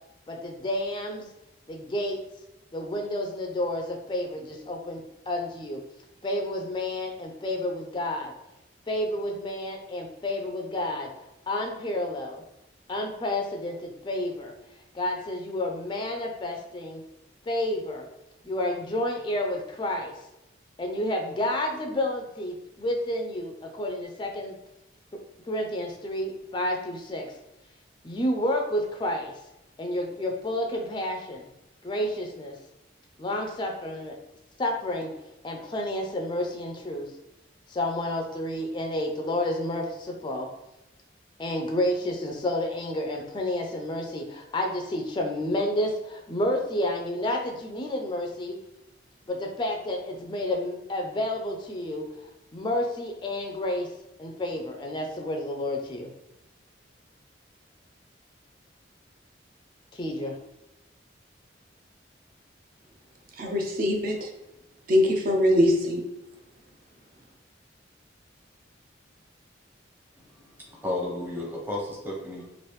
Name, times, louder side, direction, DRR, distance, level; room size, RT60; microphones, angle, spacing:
voice 1, 0.3-1.2 1.7-2.2 2.7-5.8 6.2-8.3 8.9-11.1 11.5-12.4 12.9-14.5 14.9-17.0 17.5-18.1 18.4-20.2 20.8-24.5 25.5-27.3 28.0-29.4 29.8-31.5 31.8-32.6 33.2-34.2 34.6-35.1 35.4-37.1 37.7-40.5 41.4-48.6 49.3-52.0 52.5-53.9 54.2-56.1 59.9-60.3, left 1 dB, 25° left, 3 dB, 0.3 m, -30 dB
voice 2, 63.4-64.3 64.9-66.1, left 1 dB, 50° right, 2 dB, 0.4 m, -22 dB
voice 3, 70.2-72.4, left 1 dB, 10° right, -4 dB, 0.7 m, -33 dB
3.1 x 2.5 x 3.0 m, 0.92 s
head